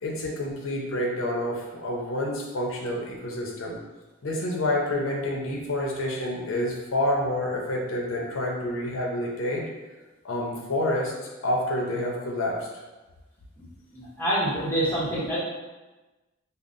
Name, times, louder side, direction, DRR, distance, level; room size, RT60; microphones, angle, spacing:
voice 1, 0.0-3.8 4.2-9.6 10.2-12.7, left 1 dB, 75° left, -2 dB, 0.7 m, -28 dB
voice 2, 13.9-15.4, right 1 dB, 10° left, -9 dB, 1.0 m, -26 dB
5.4 x 2.1 x 2.5 m, 1.1 s
head